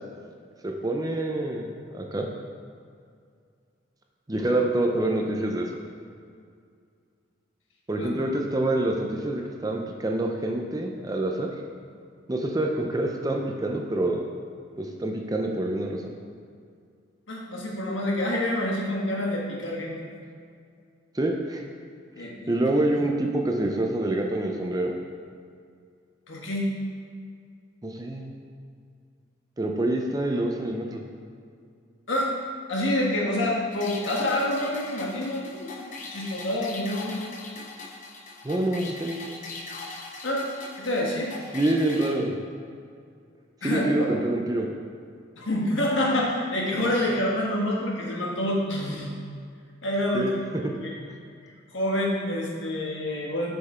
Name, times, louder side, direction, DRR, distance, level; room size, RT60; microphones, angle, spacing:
voice 1, 0.6-2.3 4.3-5.8 7.9-11.5 12.3-14.3 14.8-16.1 21.1-21.6 22.5-25.0 27.8-28.3 29.6-31.0 38.4-39.2 41.5-42.4 43.6-44.7 50.1-50.3 50.6-50.7, right 1 dB, 20° right, 2 dB, 0.5 m, -26 dB
voice 2, 17.3-19.9 22.1-22.9 26.3-26.7 32.1-32.3 32.7-37.2 40.2-40.5 40.8-41.3 43.6-44.1 45.3-49.1 49.8-50.9 51.7-53.6, left 1 dB, 80° left, -2 dB, 1.4 m, -27 dB
sound 1, 33.7-42.1, left 3 dB, 40° left, 0.7 m, -40 dB
6.5 x 5.8 x 4.4 m, 2.3 s
head